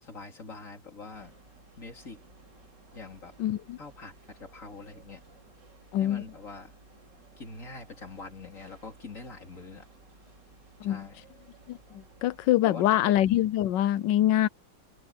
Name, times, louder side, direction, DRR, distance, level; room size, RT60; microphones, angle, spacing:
voice 1, 0.0-1.3 1.8-2.2 2.9-3.4 3.8-4.1 4.4-5.2 6.0-6.8 7.4-9.9 10.8-11.3 12.6-13.1, left 3 dB, 45° left, 3.8 m, -44 dB
sound 1, 1.1-12.5, right 3 dB, 75° right, 4.0 m, -57 dB
voice 2, 3.4-3.8 5.9-6.2 10.8-11.1 11.7-14.5, left 13 dB, 90° left, 1.3 m, -25 dB
omnidirectional pair, 1.9 m